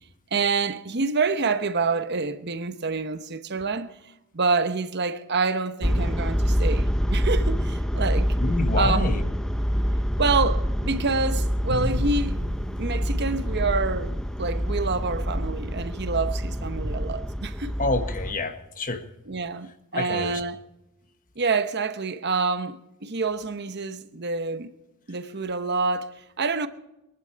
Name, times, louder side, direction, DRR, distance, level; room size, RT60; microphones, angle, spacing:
voice 1, 0.3-3.9 4.3-8.3 8.7-9.2 10.2-12.4 12.8-17.7 19.3-20.6 21.4-24.7 25.1-26.7, right 4 dB, 50° right, 0.9 m, -27 dB
sound 1, 5.8-18.3, equal, 5° left, 0.6 m, -26 dB
voice 2, 8.4-9.2 17.8-19.0 19.9-20.4, left 3 dB, 40° left, 1.4 m, -28 dB
Drum, 11.7-14.6, equal, 85° right, 3.6 m, -38 dB
23.5 x 11.5 x 4.6 m
head